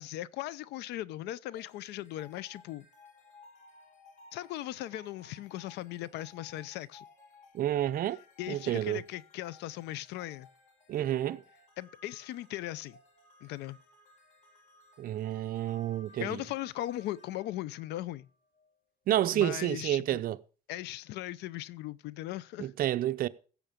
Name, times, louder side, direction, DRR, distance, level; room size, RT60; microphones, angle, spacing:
voice 1, 0.0-2.8 4.3-7.0 8.4-10.5 11.8-13.0 13.4-13.8 16.2-18.3 19.3-20.2 20.7-22.7, left 14 dB, 80° left, 0.6 m, -38 dB
sound 1, 1.6-18.7, left 3 dB, 45° left, 2.7 m, -59 dB
voice 2, 7.5-8.2 8.5-9.0 10.9-11.4 15.0-16.4 19.1-20.4 22.6-23.3, right 13 dB, 60° right, 0.7 m, -29 dB
16.0 x 7.2 x 5.2 m
cardioid pair, 110°, 17 cm